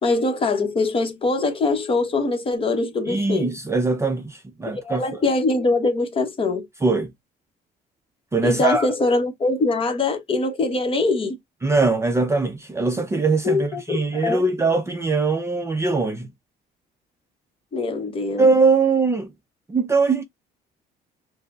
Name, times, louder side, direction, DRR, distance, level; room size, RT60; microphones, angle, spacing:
voice 1, 0.0-3.5 4.8-6.7 8.4-11.4 13.4-14.5 17.7-18.4, left 3 dB, 30° left, 0.8 m, -23 dB
voice 2, 3.1-5.0 6.8-7.1 8.3-8.9 11.6-16.3 18.4-19.3 19.7-20.2, right 3 dB, 15° right, 0.4 m, -21 dB
4.7 x 2.0 x 2.3 m
cardioid pair, 110°, 17 cm